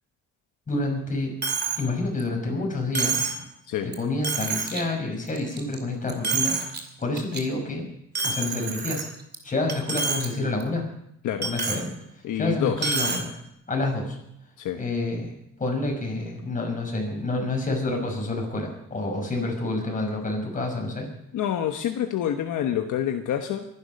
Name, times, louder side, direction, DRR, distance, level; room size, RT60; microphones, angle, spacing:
voice 1, 0.7-1.4 1.8-3.2 3.8-6.6 7.0-7.9 8.2-9.1 9.4-10.9 11.4-11.9 12.3-13.4 13.7-14.2 14.8-15.3 15.6-21.1, left 2 dB, 25° left, 1 dB, 5.7 m, -28 dB
Coin (dropping), 1.4-1.8 2.2-2.3 2.9-3.4 3.9-4.0 4.2-4.8 5.3-5.8 6.1-6.8 7.2-7.4 8.1-9.4 9.7-10.3 10.6-10.7 11.4-11.8 12.8-13.2, right 4 dB, 30° right, 2.6 m, -27 dB
voice 2, 12.2-12.9 14.6-14.8 21.3-23.7, left 10 dB, 70° left, 5 dB, 1.2 m, -27 dB
23.5 x 11.0 x 5.4 m, 0.76 s
cardioid pair, 125°, 32 cm